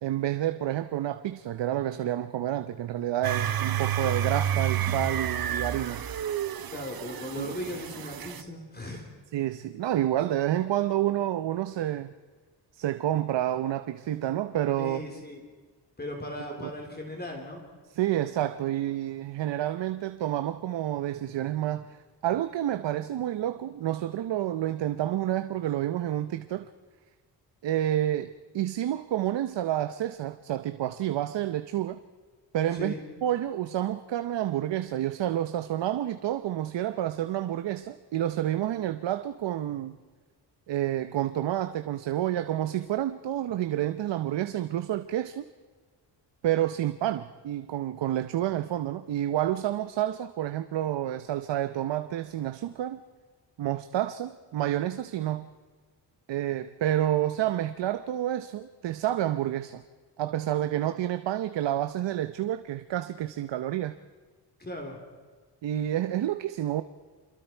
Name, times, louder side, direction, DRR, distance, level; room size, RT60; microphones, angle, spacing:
voice 1, 0.0-6.0 7.4-7.5 9.3-12.1 12.7-15.0 16.6-16.7 17.9-26.7 27.6-32.0 32.5-32.9 33.2-40.0 40.7-45.5 46.4-53.0 53.6-55.5 56.3-59.8 60.2-64.0 65.6-66.8, right 12 dB, 80° right, 0.9 m, -29 dB
sound 1, 3.2-8.4, right 9 dB, 55° right, 1.1 m, -30 dB
voice 2, 6.7-9.1 14.8-15.4 16.0-17.6 32.7-33.0 64.6-65.0, left 1 dB, 20° left, 3.6 m, -37 dB
27.0 x 22.5 x 4.6 m
cardioid pair, 125°, 43 cm